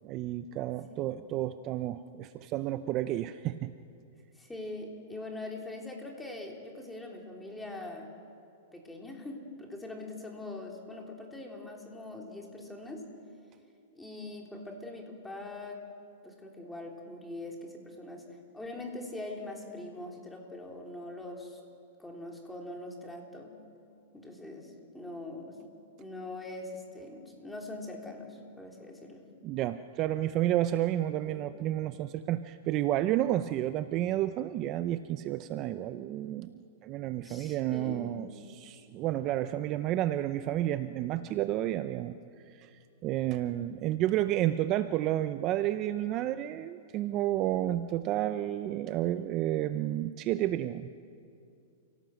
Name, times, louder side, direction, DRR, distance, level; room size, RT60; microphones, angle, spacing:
voice 1, 0.0-3.7 29.4-42.2 42.5-42.7 43.0-50.9, right 13 dB, 35° right, 11 dB, 0.7 m, -31 dB
voice 2, 4.4-8.1 8.7-13.1 14.0-15.8 16.2-18.3 18.5-21.6 22.0-23.6 24.1-25.6 26.0-29.2 31.3-31.5 37.2-38.2, left 2 dB, 5° left, 0 dB, 3.7 m, -42 dB
30.0 x 17.5 x 7.8 m, 2.5 s
hypercardioid pair, 140°, 0 cm